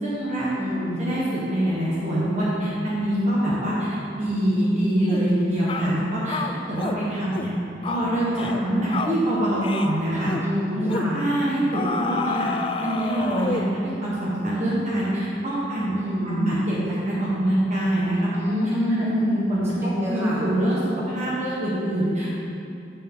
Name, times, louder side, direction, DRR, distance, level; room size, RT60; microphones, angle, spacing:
voice 1, 0.0-0.5 1.0-6.4 6.7-7.5 7.9-10.3 10.7-12.5 12.8-16.8 17.0-18.3 19.2-20.8 21.1-22.3, right 1 dB, 40° right, -8 dB, 1.4 m, -24 dB
voice 2, 0.6-1.0 10.4-11.2 16.0-16.5 18.3-19.5 19.8-20.5, left 1 dB, 15° right, -8 dB, 2.1 m, -26 dB
sound 1, 5.1-5.3 5.7-5.9 6.3-7.0 7.3-7.5 7.8-8.0 8.4-8.6 8.9-9.2 9.6-9.9 10.2-10.5 10.9-11.1 11.7-13.8, left 4 dB, 30° left, 0.4 m, -29 dB
9.6 x 7.2 x 3.7 m, 2.7 s
head